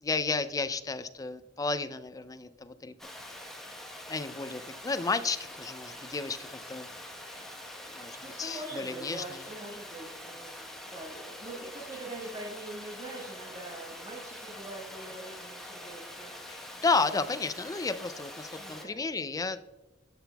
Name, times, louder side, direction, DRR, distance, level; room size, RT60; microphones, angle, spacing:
voice 1, 0.0-2.9 4.1-6.9 7.9-9.4 16.5-19.6, left 4 dB, 20° left, 11 dB, 0.4 m, -32 dB
Water, 3.0-18.8, left 1 dB, ahead, 1.0 m, -45 dB
voice 2, 8.2-16.3 17.7-17.8 18.5-19.0, right 2 dB, 30° right, -4 dB, 1.5 m, -43 dB
12.5 x 5.8 x 2.3 m, 1.1 s
head